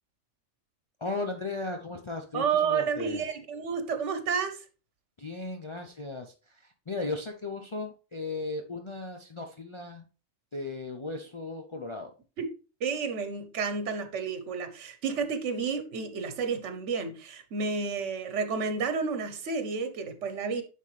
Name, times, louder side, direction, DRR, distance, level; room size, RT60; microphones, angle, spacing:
voice 1, 1.0-3.2 5.2-10.0 10.5-12.1, left 3 dB, 35° left, 0.5 m, -36 dB
voice 2, 2.3-4.6 12.4-12.5 12.8-20.6, right 5 dB, 75° right, 1.2 m, -31 dB
9.5 x 3.7 x 3.2 m
omnidirectional pair, 1.2 m